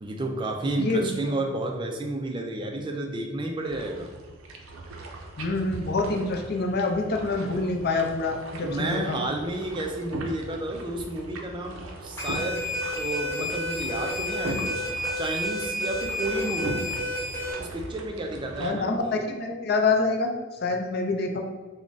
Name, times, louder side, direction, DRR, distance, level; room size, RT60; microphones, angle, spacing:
voice 1, 0.0-4.1 8.6-12.7 12.9-14.9 15.2-16.9 17.6-19.3, right 2 dB, 25° right, 2 dB, 0.3 m, -31 dB
sound 1, 3.6-18.7, right 2 dB, 75° right, 0.5 m, -39 dB
voice 2, 5.4-9.2 18.6-19.0 19.3-21.4, left 3 dB, 50° left, 3 dB, 0.4 m, -26 dB
sound 2, 12.2-17.5, left 1 dB, 10° left, 0.8 m, -30 dB
3.5 x 2.1 x 3.8 m, 1.3 s
head